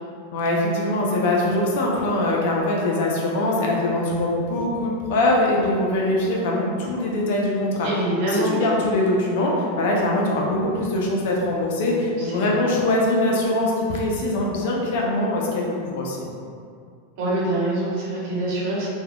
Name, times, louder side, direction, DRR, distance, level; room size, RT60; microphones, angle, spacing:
voice 1, 0.3-7.9 8.2-16.2, left 1 dB, 65° left, -2 dB, 0.6 m, -22 dB
voice 2, 7.7-8.6 12.2-12.6 17.2-18.9, right 1 dB, 60° right, -6 dB, 0.9 m, -25 dB
3.2 x 2.3 x 2.2 m, 2.3 s
hypercardioid pair, 110°, 0 cm